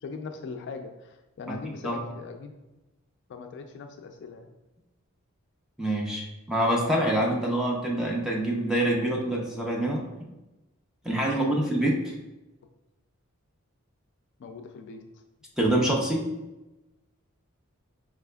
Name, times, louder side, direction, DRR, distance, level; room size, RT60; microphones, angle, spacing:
voice 1, 0.0-2.5 3.3-4.5 11.2-11.6 14.4-15.2, left 4 dB, 55° left, 6 dB, 0.3 m, -40 dB
voice 2, 5.8-10.0 11.0-12.1 15.6-16.3, right 1 dB, 5° right, -2 dB, 0.6 m, -26 dB
4.9 x 3.4 x 2.2 m, 1.0 s
head